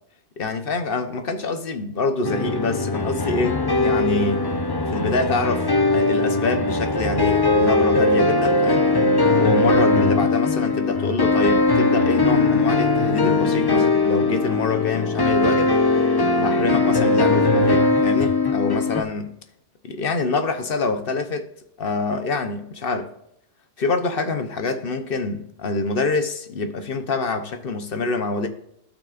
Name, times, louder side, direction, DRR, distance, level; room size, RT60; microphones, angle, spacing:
voice 1, 0.4-4.4 4.8-8.8 9.4-15.7 16.3-19.3 19.8-21.5 21.8-23.1 23.8-28.5, left 3 dB, 55° left, 1.1 m, -25 dB
sound 1, 2.2-19.0, left 3 dB, 25° left, 0.7 m, -20 dB
14.0 x 6.1 x 2.5 m
omnidirectional pair, 1.1 m